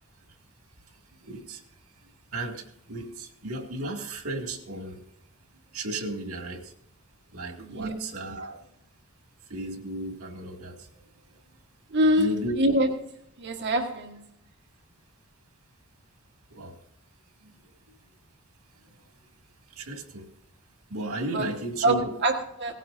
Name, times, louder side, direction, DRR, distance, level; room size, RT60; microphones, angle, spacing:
voice 1, 1.2-1.6 2.3-5.0 5.7-6.7 7.3-8.6 9.5-11.0 11.3-11.4 12.2-12.5 16.5-16.8 17.4-17.5 17.9-18.0 18.8-18.9 19.7-20.3 20.9-22.2, right 1 dB, 85° right, 4 dB, 2.2 m, -35 dB
voice 2, 7.6-8.0 11.9-12.9 13.4-14.2 21.3-21.5 21.8-22.7, right 1 dB, 55° right, 3 dB, 1.5 m, -25 dB
18.5 x 15.5 x 2.6 m, 0.76 s
head